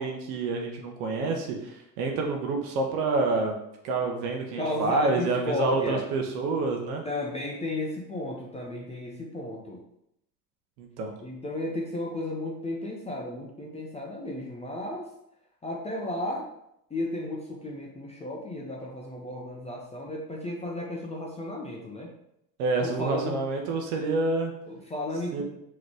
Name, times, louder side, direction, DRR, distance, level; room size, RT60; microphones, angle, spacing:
voice 1, 0.0-3.6 3.8-7.0 10.8-11.1 22.6-24.5 25.3-25.4, right 3 dB, 65° right, 2 dB, 0.9 m, -28 dB
voice 2, 4.6-6.1 7.0-9.8 11.2-15.0 15.6-16.5 16.9-22.1 22.8-23.4 24.7-25.4, left 1 dB, 15° left, -2 dB, 0.6 m, -33 dB
3.8 x 3.1 x 3.4 m, 0.78 s
hypercardioid pair, 90°, 49 cm